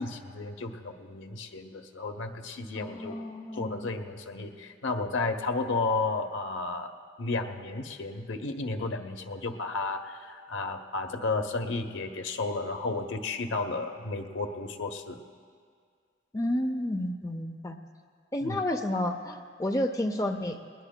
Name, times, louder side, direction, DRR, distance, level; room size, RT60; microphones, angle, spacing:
voice 1, 0.0-3.2 3.5-15.2 18.4-18.6, left 3 dB, 85° left, 6 dB, 0.8 m, -33 dB
voice 2, 2.7-3.9 16.3-17.8 18.3-20.6, left 1 dB, 15° left, 5 dB, 0.4 m, -31 dB
20.5 x 20.5 x 2.2 m, 2.1 s
head